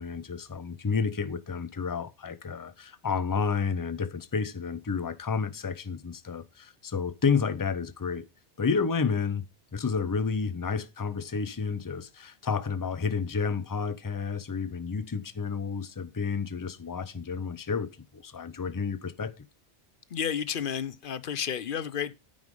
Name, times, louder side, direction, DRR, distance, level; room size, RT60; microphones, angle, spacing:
voice 1, 0.0-8.2 8.6-9.4 9.7-19.4, left 5 dB, 25° left, 0.4 m, -30 dB
voice 2, 20.1-22.1, left 8 dB, 55° left, 0.7 m, -31 dB
9.5 x 5.2 x 5.4 m
omnidirectional pair, 1.2 m